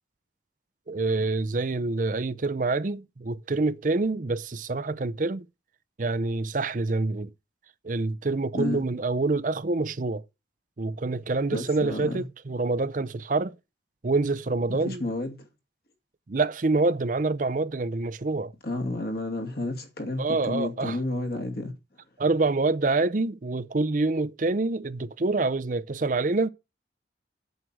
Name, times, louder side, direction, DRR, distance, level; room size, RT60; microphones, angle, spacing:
voice 1, 0.9-5.4 6.0-7.3 7.8-10.2 10.8-13.5 14.0-15.0 16.3-18.5 20.2-21.0 22.2-26.5, right 3 dB, 45° right, 0.6 m, -26 dB
voice 2, 8.5-8.8 11.5-12.2 14.7-15.4 18.6-21.7, left 2 dB, 55° left, 2.4 m, -31 dB
7.9 x 7.5 x 7.6 m
head